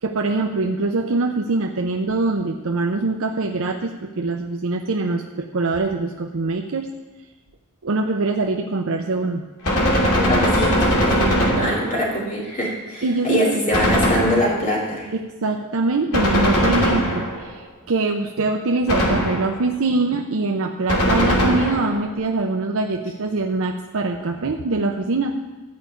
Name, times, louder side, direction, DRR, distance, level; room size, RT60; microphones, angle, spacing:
voice 1, 0.0-6.9 7.8-9.4 11.0-11.1 11.6-11.7 13.0-13.6 15.1-25.3, right 3 dB, 65° right, 3 dB, 0.6 m, -23 dB
Gunshot gunfire, 9.6-12.1 13.7-14.8 16.1-17.6 18.9-19.7 20.9-22.0, equal, 85° left, 2.6 m, -20 dB
voice 2, 10.2-15.1, equal, 35° left, -3 dB, 3.0 m, -23 dB
13.5 x 5.1 x 8.4 m, 1.2 s
head